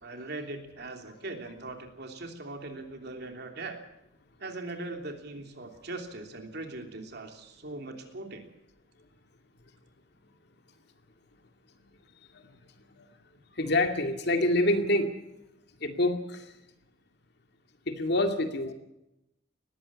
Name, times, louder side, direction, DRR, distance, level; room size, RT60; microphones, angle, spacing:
voice 1, 0.0-3.8 4.4-8.4, right 2 dB, 55° right, 4 dB, 3.1 m, -40 dB
voice 2, 13.6-15.1 15.8-16.5 17.9-18.7, left 1 dB, 55° left, 6 dB, 2.3 m, -27 dB
20.0 x 15.0 x 8.7 m, 0.89 s
head